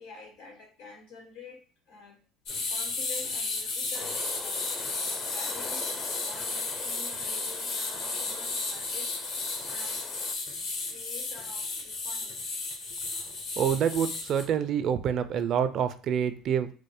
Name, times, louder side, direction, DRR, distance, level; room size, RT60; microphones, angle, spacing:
voice 1, 0.0-1.6 1.9-2.2 2.7-4.6 5.2-5.9 6.2-9.2 9.6-10.0 10.9-12.4, left 4 dB, 85° left, -2 dB, 1.8 m, -48 dB
sound 1, 2.5-14.4, left 3 dB, 70° left, 1.1 m, -33 dB
sound 2, 3.9-10.4, left 2 dB, 20° left, 0.5 m, -44 dB
voice 2, 13.6-16.7, right 8 dB, 55° right, 11 dB, 0.4 m, -27 dB
4.7 x 2.1 x 3.0 m, 0.39 s
hypercardioid pair, 75°, 0 cm